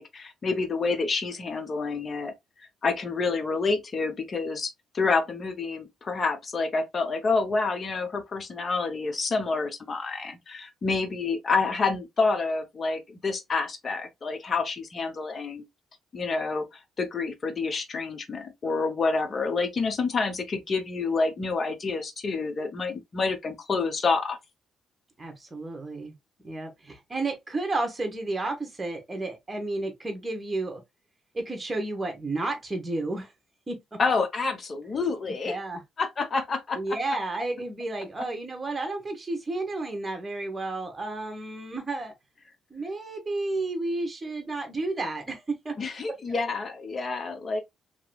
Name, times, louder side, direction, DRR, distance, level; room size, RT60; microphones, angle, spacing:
voice 1, 0.0-2.3 2.8-15.6 16.1-24.4 34.0-35.6 36.0-36.8 45.8-47.6, left 4 dB, 40° left, 0.9 m, -28 dB
voice 2, 25.2-26.1 26.4-30.8 31.3-33.3 33.7-34.0 35.5-35.8 36.8-42.1 42.7-45.8 46.1-46.2, right 2 dB, 20° right, 1.2 m, -32 dB
3.1 x 2.9 x 2.3 m
cardioid pair, 90°, 0 cm